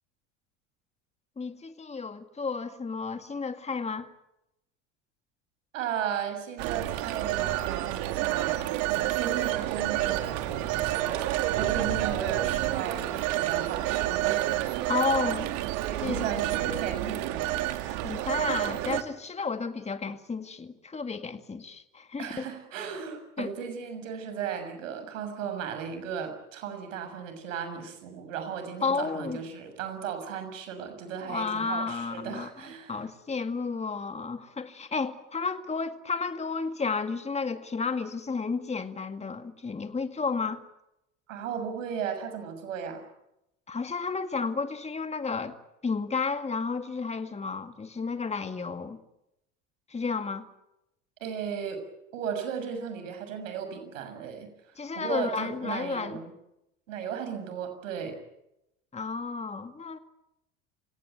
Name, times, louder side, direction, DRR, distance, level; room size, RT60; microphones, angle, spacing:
voice 1, 1.4-4.1 14.9-15.5 16.0-16.3 17.9-22.5 23.4-23.5 28.8-29.4 31.3-32.5 32.9-40.6 43.7-45.6 45.8-49.0 49.9-50.5 54.8-56.2 58.9-60.0, left 4 dB, 15° left, 8 dB, 2.1 m, -32 dB
voice 2, 5.7-15.0 15.9-17.7 22.2-33.1 41.3-43.0 51.2-51.8 52.1-54.5 54.9-56.3 56.9-58.2, right 7 dB, 90° right, 8 dB, 6.7 m, -35 dB
Telephone, 6.6-19.0, right 15 dB, 70° right, 2.3 m, -29 dB
28.0 x 17.5 x 9.2 m, 0.87 s
supercardioid pair, 95°, 37 cm